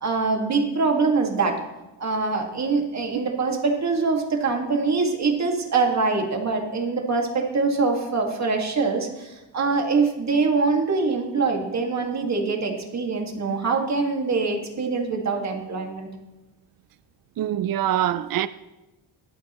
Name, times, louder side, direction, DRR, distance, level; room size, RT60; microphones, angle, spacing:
voice 1, 0.0-1.6 2.0-16.1, right 4 dB, 40° right, 2.0 m, -24 dB
voice 2, 17.4-18.5, right 11 dB, 55° right, 0.5 m, -24 dB
22.5 x 8.5 x 3.1 m
cardioid pair, 120°, 43 cm